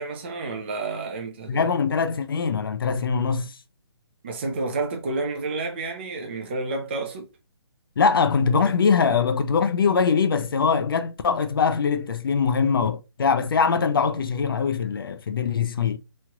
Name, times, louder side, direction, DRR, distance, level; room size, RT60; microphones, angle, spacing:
voice 1, 0.0-1.6 4.2-7.3, right 3 dB, 25° right, 0.4 m, -30 dB
voice 2, 1.5-3.5 8.0-16.0, left 5 dB, 55° left, 0.4 m, -22 dB
3.1 x 2.4 x 2.8 m
hypercardioid pair, 165°, 14 cm